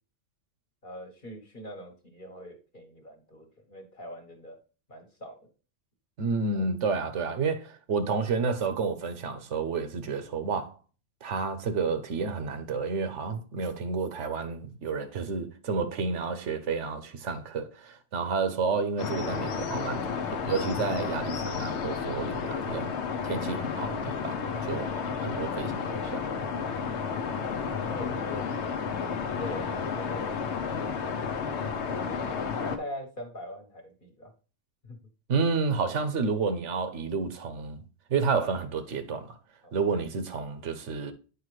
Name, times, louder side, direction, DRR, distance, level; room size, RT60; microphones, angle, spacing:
voice 1, 0.8-4.6 4.9-5.5 27.2-28.5 28.8-30.6 31.8-34.3 34.8-35.0 39.6-39.7, equal, 45° left, 1.4 m, -43 dB
voice 2, 6.2-10.7 11.2-22.9 23.2-24.9 25.2-26.3 35.3-37.8 38.1-39.4 39.7-41.1, right 4 dB, 80° right, 1.2 m, -30 dB
sound 1, 19.0-32.8, left 6 dB, 70° left, 1.0 m, -32 dB
8.4 x 4.8 x 3.2 m
omnidirectional pair, 1.2 m